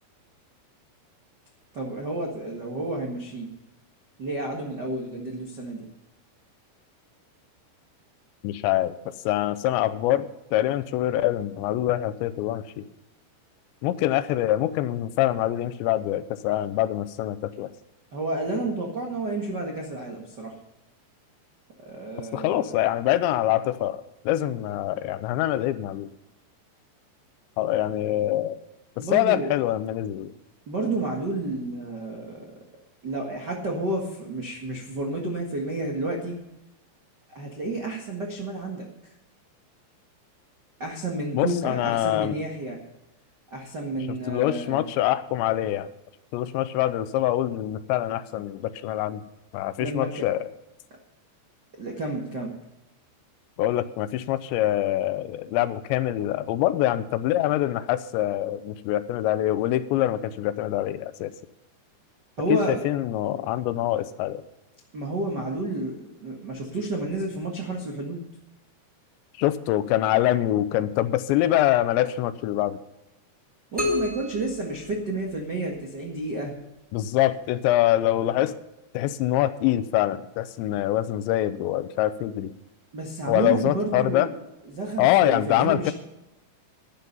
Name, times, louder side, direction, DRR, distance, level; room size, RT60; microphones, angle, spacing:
voice 1, 1.7-3.5 4.2-5.8 18.1-20.5 21.8-22.7 29.0-29.5 30.7-32.5 33.0-36.3 37.3-38.9 40.8-42.8 43.5-44.8 49.8-50.2 51.8-52.5 62.4-62.8 64.9-68.2 73.7-76.5 82.9-84.3 84.7-85.9, right 2 dB, 90° right, 0 dB, 0.9 m, -30 dB
voice 2, 8.4-9.0 9.3-12.9 13.8-17.7 22.3-26.1 27.6-28.6 29.0-30.3 41.3-42.4 44.3-45.9 46.3-49.2 49.5-50.4 53.6-61.3 62.5-64.4 69.4-72.8 76.9-78.6 78.9-82.5 83.3-84.3 85.0-85.9, left 13 dB, 85° left, 13 dB, 2.9 m, -24 dB
sound 1, 73.8-75.7, left 2 dB, ahead, 2.4 m, -31 dB
12.0 x 11.0 x 5.3 m, 0.95 s
omnidirectional pair, 5.2 m